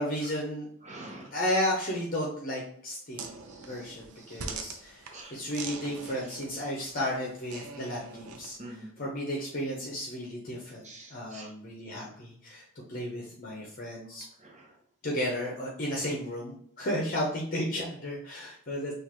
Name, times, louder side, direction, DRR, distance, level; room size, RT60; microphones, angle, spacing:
voice 1, 0.0-0.7 1.3-3.3 3.6-5.0 5.3-8.6 9.0-10.8 11.1-12.6 12.9-14.2 15.0-18.9, equal, 40° left, -3 dB, 0.8 m, -33 dB
voice 2, 0.8-1.3 3.5-4.6 5.1-5.4 6.0-6.1 8.6-8.9 10.8-11.5 14.4-14.7, right 2 dB, 30° right, 1 dB, 1.0 m, -47 dB
sound 1, 3.1-8.6, right 4 dB, 80° right, 0.7 m, -43 dB
6.3 x 2.6 x 3.0 m, 0.66 s
head